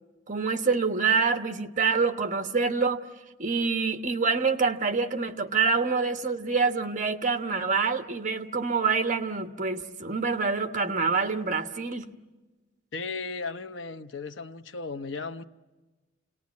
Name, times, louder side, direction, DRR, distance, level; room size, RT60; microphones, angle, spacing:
voice 1, 0.3-3.1 3.4-12.1, right 4 dB, 40° right, 1.2 m, -26 dB
voice 2, 12.9-15.4, left 4 dB, 75° left, 0.9 m, -35 dB
29.0 x 19.0 x 9.6 m
head